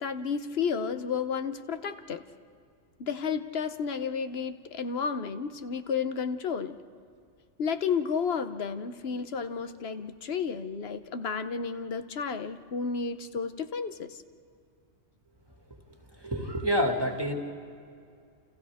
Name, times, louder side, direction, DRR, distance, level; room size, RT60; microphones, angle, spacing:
voice 1, 0.0-2.2 3.0-6.8 7.6-14.2, left 6 dB, 55° left, 9 dB, 1.1 m, -32 dB
voice 2, 16.2-17.3, equal, 20° right, 2 dB, 2.1 m, -27 dB
29.5 x 29.5 x 3.6 m, 2.3 s
omnidirectional pair, 1.3 m